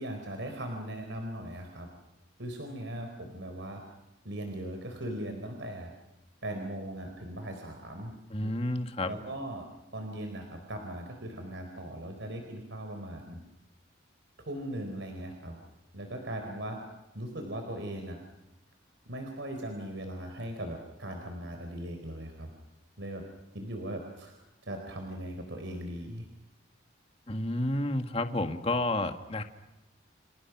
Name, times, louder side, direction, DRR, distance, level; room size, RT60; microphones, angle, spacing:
voice 1, 0.0-1.9 2.4-3.8 4.2-5.9 6.4-8.1 8.4-8.5 9.0-9.6 9.9-13.4 14.4-15.6 15.9-16.8 17.1-18.2 19.1-22.5 23.0-23.2 23.5-24.3 24.7-26.3, right 1 dB, 65° right, 4 dB, 4.3 m, -39 dB
voice 2, 8.3-9.1 27.3-29.4, left 1 dB, 30° left, 6 dB, 1.9 m, -30 dB
30.0 x 29.0 x 6.1 m, 0.98 s
head